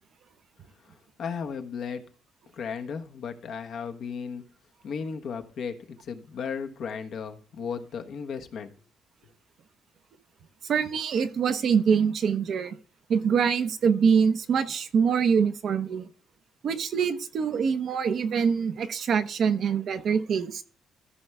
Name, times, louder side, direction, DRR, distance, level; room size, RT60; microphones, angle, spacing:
voice 1, 0.8-2.0 2.5-4.4 4.8-8.7, left 6 dB, 65° left, 5 dB, 1.2 m, -35 dB
voice 2, 10.6-12.8 13.1-16.1 16.6-20.6, right 6 dB, 65° right, 8 dB, 0.9 m, -24 dB
14.0 x 5.6 x 3.5 m, 0.42 s
cardioid pair, 90°, 0 cm